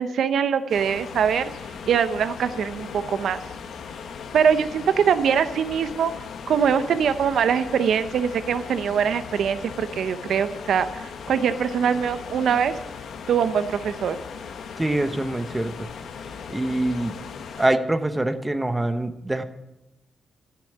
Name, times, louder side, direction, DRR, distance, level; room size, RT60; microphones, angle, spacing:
voice 1, 0.0-1.5 1.9-3.4 4.3-6.1 6.5-12.8 13.3-14.2, right 7 dB, 70° right, 11 dB, 0.7 m, -23 dB
sound 1, 0.7-17.7, left 6 dB, 70° left, 1.0 m, -38 dB
voice 2, 14.8-15.9 16.5-17.2 17.6-19.4, right 1 dB, 10° right, 8 dB, 0.8 m, -24 dB
13.0 x 7.0 x 9.1 m, 0.92 s
wide cardioid pair, 145°, 0 cm